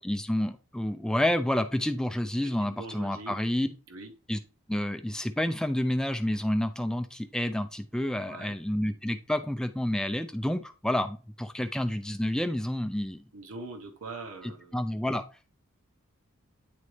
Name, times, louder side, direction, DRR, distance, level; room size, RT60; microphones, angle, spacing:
voice 1, 0.0-3.7 4.3-4.4 4.7-13.2 14.7-15.2, left 1 dB, 5° left, 0.3 m, -29 dB
voice 2, 2.6-3.4 3.9-4.1 8.3-8.6 13.3-14.8, right 3 dB, 80° right, 1.0 m, -42 dB
9.5 x 4.1 x 3.2 m
head